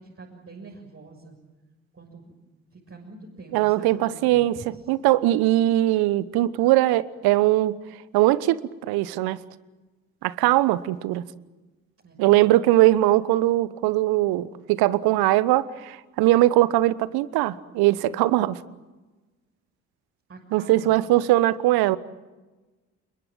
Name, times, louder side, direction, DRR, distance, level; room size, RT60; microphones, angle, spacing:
voice 1, 0.0-1.4 2.0-2.2 2.9-4.6 12.0-12.4 20.3-21.0, right 3 dB, 35° right, 6.6 m, -45 dB
voice 2, 3.5-7.8 8.1-8.6 8.9-9.4 10.2-11.2 12.2-18.6 20.5-22.0, right 16 dB, 65° right, 1.1 m, -20 dB
29.0 x 22.5 x 7.5 m
figure-of-eight pair, 45°, 40 cm